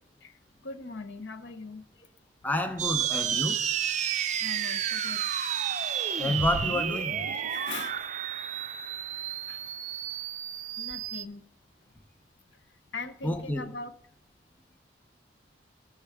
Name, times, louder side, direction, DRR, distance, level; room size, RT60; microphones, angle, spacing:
voice 1, 0.2-2.1 4.1-5.2 7.2-8.1 9.5-9.6 10.8-11.5 12.6-13.9, left 3 dB, 85° left, 10 dB, 0.7 m, -41 dB
voice 2, 2.4-3.6 6.2-7.2 13.2-13.7, left 1 dB, 10° left, 6 dB, 0.7 m, -29 dB
sound 1, 2.8-11.2, right 9 dB, 40° right, 0.4 m, -31 dB
13.0 x 5.8 x 3.5 m, 0.70 s
head